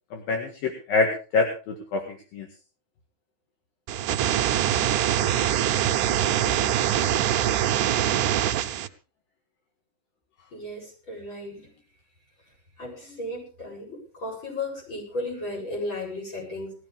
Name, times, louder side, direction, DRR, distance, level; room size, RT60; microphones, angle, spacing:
voice 1, 0.1-2.5, left 3 dB, 70° left, 2 dB, 3.5 m, -26 dB
sound 1, 3.9-8.9, right 11 dB, 70° right, 2.2 m, -23 dB
voice 2, 10.5-11.7 12.8-16.7, left 2 dB, 30° left, -2 dB, 8.6 m, -35 dB
20.0 x 15.0 x 3.5 m, 0.36 s
omnidirectional pair, 4.3 m